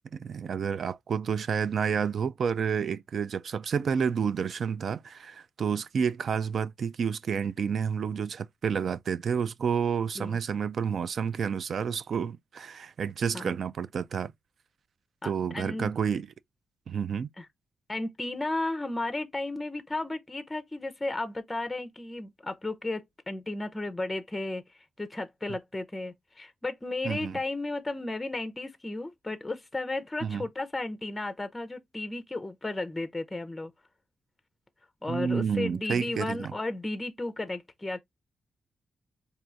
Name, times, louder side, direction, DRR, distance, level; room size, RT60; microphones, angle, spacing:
voice 1, 0.1-14.3 15.2-16.3 16.9-17.3 27.0-27.4 30.2-30.4 35.1-36.5, right 6 dB, 60° right, 0.3 m, -30 dB
voice 2, 15.2-15.9 17.4-17.5 17.9-33.7 35.0-38.0, left 2 dB, 15° left, 0.5 m, -34 dB
4.4 x 2.6 x 2.5 m
cardioid pair, 95°, 0 cm